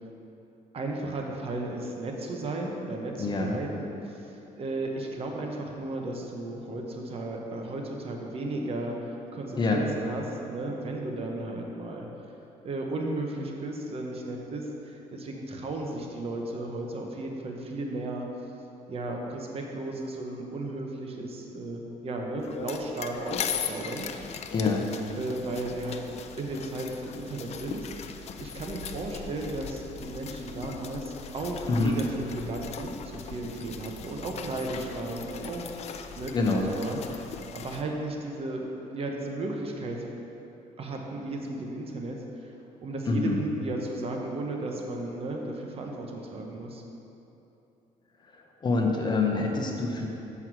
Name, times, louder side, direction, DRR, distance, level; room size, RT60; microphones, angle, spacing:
voice 1, 0.7-12.1 12.6-18.3 18.9-24.1 25.1-26.0 26.4-35.7 36.2-40.0 40.8-42.5 42.8-46.8, right 2 dB, 45° right, 1 dB, 1.0 m, -34 dB
voice 2, 3.2-3.6 9.5-9.8 24.5-24.9 31.7-31.9 36.3-36.7 43.1-43.4 48.3-50.1, left 3 dB, 30° left, 1 dB, 0.8 m, -26 dB
sound 1, 22.4-37.8, left 7 dB, 50° left, 0.5 m, -39 dB
7.7 x 5.8 x 4.6 m, 3.0 s
cardioid pair, 120°, 14 cm